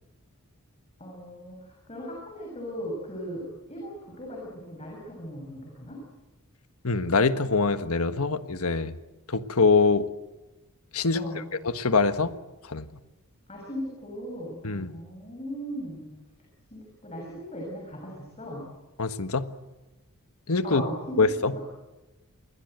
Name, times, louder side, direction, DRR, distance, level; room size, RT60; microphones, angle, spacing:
voice 1, 1.0-6.0 11.1-11.5 13.5-16.1 16.7-18.7 20.6-21.6, equal, 30° left, -1 dB, 6.8 m, -38 dB
voice 2, 6.8-8.9 9.3-10.1 10.9-11.2 11.6-12.3 12.7-12.9 14.6-14.9 19.0-19.5 20.5-20.8 21.2-21.5, left 4 dB, 75° left, 10 dB, 1.5 m, -24 dB
28.0 x 21.5 x 8.0 m, 1.1 s
head